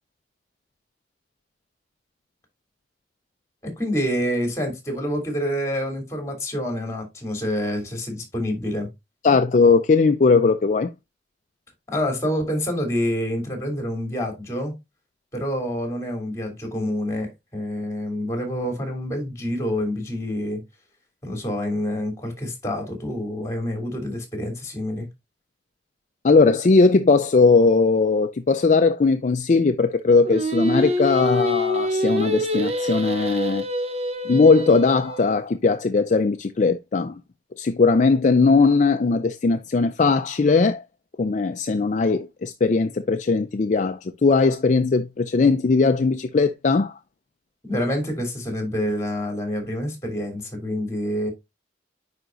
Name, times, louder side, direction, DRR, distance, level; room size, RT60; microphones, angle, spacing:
voice 1, 3.6-8.9 11.9-14.7 15.3-20.6 21.2-25.1 47.6-51.3, equal, 15° left, 3.0 m, -27 dB
voice 2, 9.2-10.9 26.2-33.6 34.2-37.2 37.6-40.8 41.2-47.0, left 4 dB, 45° left, 0.4 m, -19 dB
Singing, 30.2-35.4, left 1 dB, 35° right, 0.9 m, -26 dB
9.4 x 5.1 x 2.5 m
head